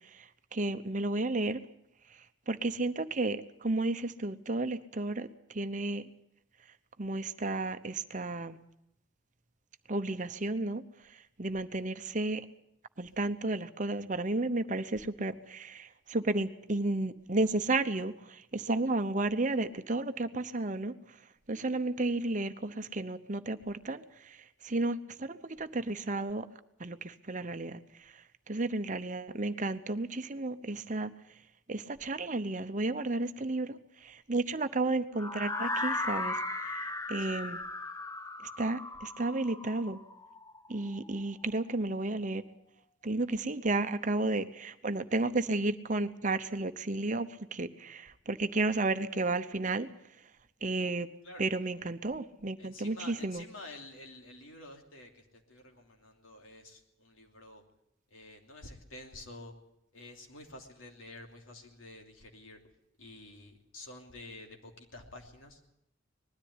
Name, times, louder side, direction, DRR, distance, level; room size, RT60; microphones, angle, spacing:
voice 1, 0.1-1.6 2.5-6.1 7.0-8.6 9.9-10.8 11.4-12.4 13.0-21.0 21.5-26.5 26.8-31.1 31.7-36.4 36.7-36.8 37.1-37.6 38.6-40.0 40.7-42.4 43.0-49.9 50.6-51.1 51.4-53.4, right 2 dB, 40° right, 10 dB, 0.8 m, -32 dB
sound 1, 35.2-41.1, left 2 dB, 15° left, 0.9 m, -37 dB
voice 2, 37.2-37.5 51.2-51.5 52.6-57.6 58.1-59.5 59.9-62.6 63.0-65.6, left 2 dB, 90° left, 3 dB, 3.0 m, -49 dB
20.5 x 13.0 x 9.7 m, 0.79 s
head